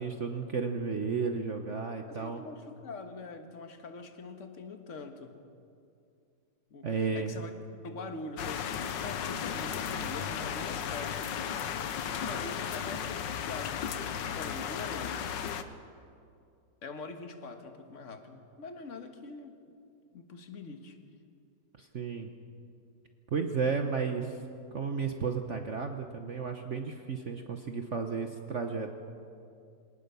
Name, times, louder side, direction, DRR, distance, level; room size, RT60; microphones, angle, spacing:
voice 1, 0.0-2.4 6.8-7.4 21.8-22.3 23.3-24.4 24.7-28.9, right 5 dB, 45° right, 5 dB, 1.2 m, -33 dB
voice 2, 2.1-5.4 6.7-7.5 7.8-11.2 12.0-15.5 16.8-19.6 20.1-21.0, left 3 dB, 45° left, 6 dB, 1.7 m, -44 dB
sound 1, 8.4-15.6, left 8 dB, 80° left, 1.6 m, -35 dB
25.0 x 18.5 x 6.9 m, 2.5 s
omnidirectional pair, 1.9 m